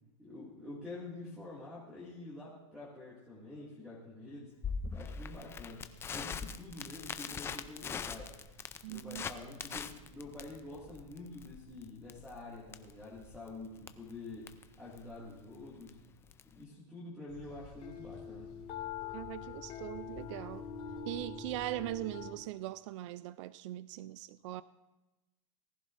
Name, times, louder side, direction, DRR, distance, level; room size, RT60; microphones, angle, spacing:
voice 1, 0.2-4.5 4.9-8.3 8.9-14.5 14.8-16.0 16.5-18.5, left 2 dB, 5° right, 2.1 m, -47 dB
Crackle, 4.6-16.6, left 6 dB, 15° left, 0.4 m, -43 dB
voice 2, 8.8-9.2 19.1-20.6 21.0-24.6, right 15 dB, 60° right, 0.4 m, -40 dB
sound 1, 17.3-22.3, left 7 dB, 35° left, 2.0 m, -44 dB
18.5 x 11.0 x 2.5 m
supercardioid pair, 145°, 18 cm